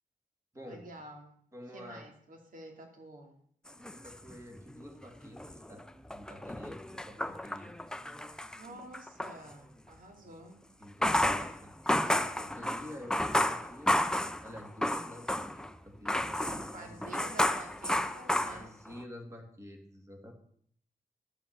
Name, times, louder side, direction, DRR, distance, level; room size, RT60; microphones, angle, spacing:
voice 1, 0.6-1.4 1.7-3.4 8.6-10.6 16.7-18.7, right 1 dB, 65° right, 2 dB, 2.7 m, -49 dB
voice 2, 1.5-2.0 3.7-5.8 6.1-7.7 10.8-17.3 18.4-20.3, equal, 20° right, 2 dB, 2.5 m, -49 dB
sound 1, 3.7-4.9 5.2-9.4 10.8-15.7 16.1-19.0, left 1 dB, 5° left, 0.6 m, -32 dB
12.0 x 7.5 x 6.7 m, 0.62 s
wide cardioid pair, 115°, 15 cm